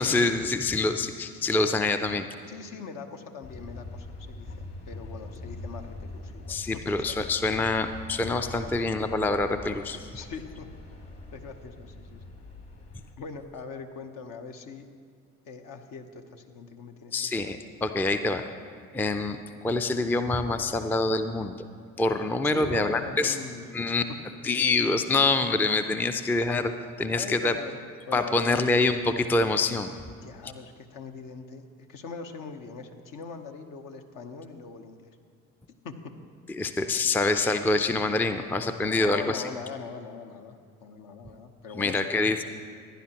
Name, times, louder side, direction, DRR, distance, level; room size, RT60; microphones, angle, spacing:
voice 1, 0.0-2.3 6.5-10.0 17.1-18.5 18.9-21.6 22.0-23.4 23.7-24.0 24.4-26.7 27.0-27.5 28.1-30.0 36.5-39.4 41.7-42.4, left 3 dB, 5° left, 8 dB, 0.4 m, -26 dB
voice 2, 2.5-6.6 6.9-7.0 10.1-10.7 11.3-12.3 13.2-14.9 15.5-17.1 17.4-17.5 22.4-23.8 27.1-27.7 28.1-28.6 30.2-35.1 35.8-35.9 38.9-40.6 40.8-42.1, left 5 dB, 60° left, 5 dB, 1.0 m, -41 dB
sound 1, 3.4-13.1, left 2 dB, 40° left, 1.7 m, -43 dB
15.5 x 10.5 x 2.9 m, 2.2 s
hypercardioid pair, 55°, 38 cm